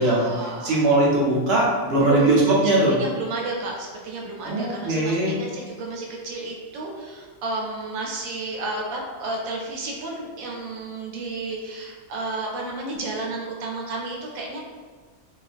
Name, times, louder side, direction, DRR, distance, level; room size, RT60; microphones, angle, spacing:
voice 1, 0.0-0.9 2.0-14.6, right 2 dB, 90° right, -1 dB, 1.0 m, -32 dB
voice 2, 0.6-2.9 4.4-5.4, right 2 dB, 60° right, -4 dB, 0.7 m, -20 dB
2.4 x 2.2 x 2.4 m, 1.5 s
omnidirectional pair, 1.4 m